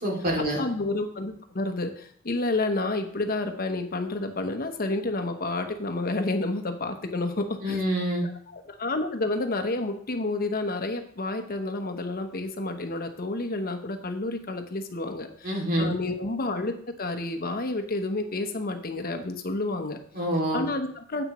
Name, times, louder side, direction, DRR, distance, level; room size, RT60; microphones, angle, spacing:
voice 1, 0.0-0.6 7.6-8.2 15.4-15.9 20.1-20.6, equal, 45° right, -2 dB, 2.7 m, -26 dB
voice 2, 0.6-7.8 8.5-20.0 20.5-21.2, left 2 dB, 45° left, 6 dB, 1.0 m, -30 dB
9.5 x 8.0 x 3.1 m, 0.62 s
head